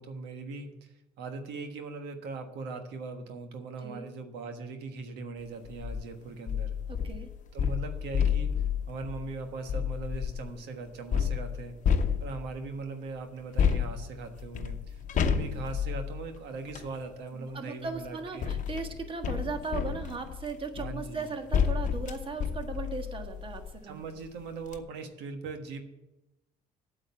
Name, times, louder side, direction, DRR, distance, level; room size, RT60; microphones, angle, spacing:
voice 1, 0.0-6.7 7.5-8.5 8.9-11.7 12.2-18.6 20.7-21.4 23.8-25.8, right 3 dB, 85° right, 6 dB, 1.4 m, -40 dB
sound 1, 5.7-6.0 6.5-10.5 11.1-12.7 13.6-16.9 17.9-23.8 24.2-24.3 24.6-24.8, left 7 dB, 50° left, 1.0 m, -31 dB
voice 2, 6.9-7.3 17.4-24.0, right 4 dB, 30° right, 6 dB, 1.5 m, -37 dB
8.8 x 7.7 x 8.5 m, 0.96 s
cardioid pair, 110°, 17 cm